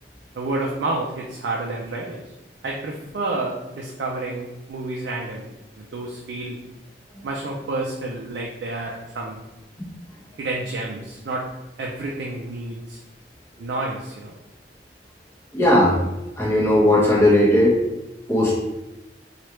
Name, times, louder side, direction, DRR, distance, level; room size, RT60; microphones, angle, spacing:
voice 1, 0.3-2.2 2.6-6.6 7.2-9.4 10.4-11.4 11.8-13.0 13.6-14.3, right 2 dB, 75° right, -2 dB, 0.4 m, -29 dB
voice 2, 15.5-16.0 16.4-17.8 18.3-18.5, left 1 dB, 15° left, -7 dB, 1.1 m, -17 dB
3.1 x 2.4 x 2.9 m, 1.0 s
head